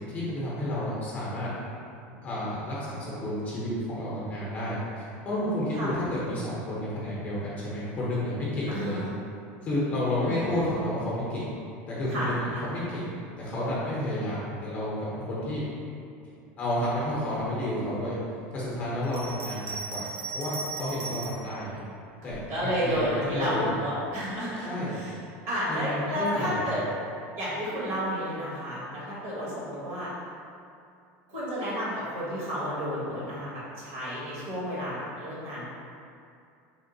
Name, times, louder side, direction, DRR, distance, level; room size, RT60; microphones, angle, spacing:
voice 1, 0.0-1.5 2.2-9.0 9.6-11.5 11.9-13.1 13.4-15.6 16.6-18.2 18.5-20.1 20.3-21.8 22.2-23.0 23.3-23.7 24.6-25.0 25.7-26.7, left 1 dB, 25° left, -7 dB, 0.8 m, -31 dB
voice 2, 8.7-9.1 10.2-10.4 12.1-12.6 22.5-25.1 25.5-26.8 27.3-30.1 31.3-35.7, equal, 50° right, -8 dB, 1.3 m, -31 dB
Bell, 19.0-21.5 22.2-23.1, right 4 dB, 80° right, 0.6 m, -38 dB
3.5 x 2.0 x 3.9 m, 2.5 s
cardioid pair, 165°, 6 cm